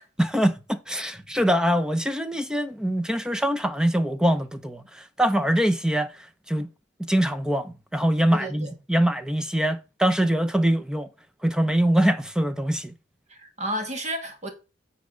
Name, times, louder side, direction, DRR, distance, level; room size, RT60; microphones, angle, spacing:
voice 1, 0.2-6.1 6.5-6.7 7.0-11.1 11.4-12.9, right 1 dB, 5° right, 0.6 m, -23 dB
voice 2, 8.3-8.7 13.3-14.5, equal, 35° right, 2.0 m, -32 dB
9.2 x 4.3 x 5.0 m
head